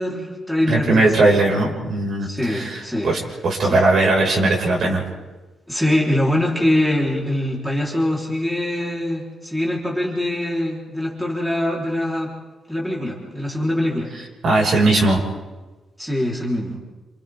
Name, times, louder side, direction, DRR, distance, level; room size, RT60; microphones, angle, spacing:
voice 1, 0.0-1.3 2.2-3.1 3.6-3.8 5.7-12.3 12.7-14.1 16.0-16.8, left 1 dB, ahead, -4 dB, 4.1 m, -23 dB
voice 2, 0.7-5.0 14.4-15.2, right 2 dB, 55° right, -2 dB, 5.9 m, -19 dB
29.0 x 28.0 x 3.8 m, 1.2 s
cardioid pair, 135°, 0 cm